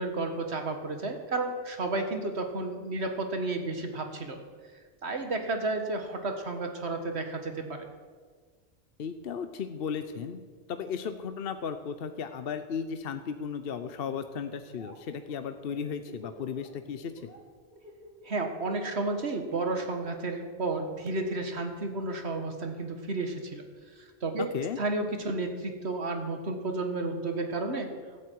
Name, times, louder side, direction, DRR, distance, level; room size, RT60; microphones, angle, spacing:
voice 1, 0.0-4.4 5.0-7.8 18.2-23.6 24.2-24.5 24.8-27.9, right 2 dB, 70° right, 5 dB, 1.8 m, -32 dB
voice 2, 9.0-10.4 10.7-17.3 24.4-24.8, left 6 dB, 60° left, 9 dB, 0.9 m, -35 dB
Laughter, 14.6-14.9 15.2-16.7 17.0-17.4 17.7-20.6, left 1 dB, 35° left, 3.0 m, -50 dB
16.0 x 13.0 x 4.6 m, 1.5 s
omnidirectional pair, 1.1 m